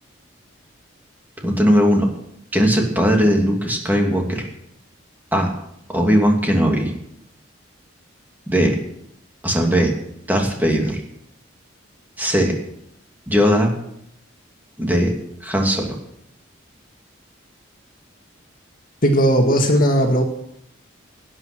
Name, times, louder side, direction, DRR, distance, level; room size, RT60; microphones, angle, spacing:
voice 1, 1.4-2.0 2.5-4.4 5.3-5.5 5.9-6.9 8.5-8.7 9.4-9.9 10.3-11.0 12.2-12.5 13.3-13.7 14.8-15.1 15.4-16.0, equal, 10° right, 0 dB, 2.8 m, -18 dB
voice 2, 19.0-20.2, equal, 45° left, 3 dB, 2.0 m, -16 dB
18.5 x 10.0 x 6.2 m, 0.76 s
head